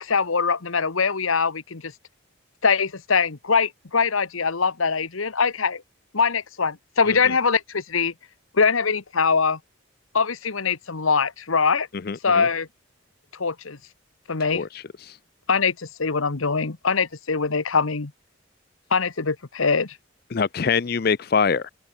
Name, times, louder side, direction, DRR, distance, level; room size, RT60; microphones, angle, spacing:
voice 1, 0.0-1.9 2.6-5.8 6.1-8.1 8.5-9.6 10.1-11.9 12.2-12.7 13.4-13.8 14.3-14.7 15.5-18.1 18.9-20.0, left 5 dB, 85° left, 1.2 m, -22 dB
voice 2, 12.1-12.5 14.5-15.2 20.3-21.7, left 5 dB, 45° left, 0.5 m, -24 dB
head